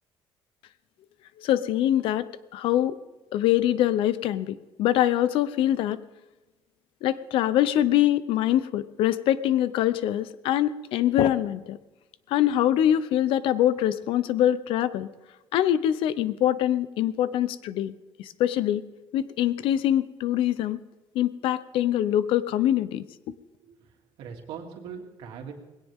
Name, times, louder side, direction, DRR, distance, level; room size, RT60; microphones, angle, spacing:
voice 1, 1.4-3.0 3.3-6.0 7.0-11.8 12.3-15.1 15.5-17.9 18.2-18.8 19.1-20.8 21.1-23.0, left 12 dB, 70° left, 15 dB, 0.8 m, -24 dB
voice 2, 24.2-25.5, right 7 dB, 80° right, 1 dB, 3.0 m, -40 dB
20.0 x 17.0 x 3.7 m, 1.1 s
cardioid pair, 175°, 9 cm